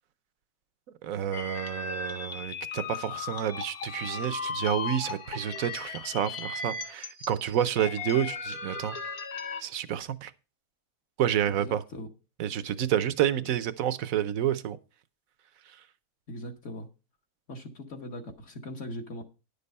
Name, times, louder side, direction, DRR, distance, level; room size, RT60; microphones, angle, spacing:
voice 1, 1.0-9.0 9.6-10.3 11.2-11.8 12.4-14.8, right 10 dB, 65° right, 1.1 m, -29 dB
sound 1, 1.3-9.6, left 4 dB, 75° left, 1.8 m, -37 dB
voice 2, 11.5-12.1 13.4-13.5 16.3-16.9 17.5-19.2, left 1 dB, 55° left, 1.5 m, -40 dB
10.5 x 6.8 x 5.3 m
omnidirectional pair, 1.6 m